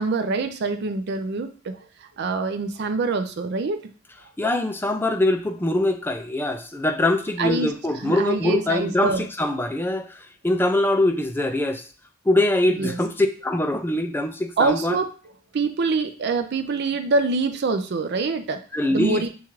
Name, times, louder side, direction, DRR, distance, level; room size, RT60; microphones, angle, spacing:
voice 1, 0.0-3.8 7.4-7.7 8.0-9.3 12.8-13.0 14.6-15.1 15.5-18.6 18.9-19.3, right 3 dB, 55° right, 8 dB, 0.4 m, -25 dB
voice 2, 4.4-11.9 12.3-15.0 18.7-19.3, left 1 dB, 10° left, 6 dB, 0.4 m, -23 dB
7.0 x 2.4 x 3.1 m, 0.38 s
head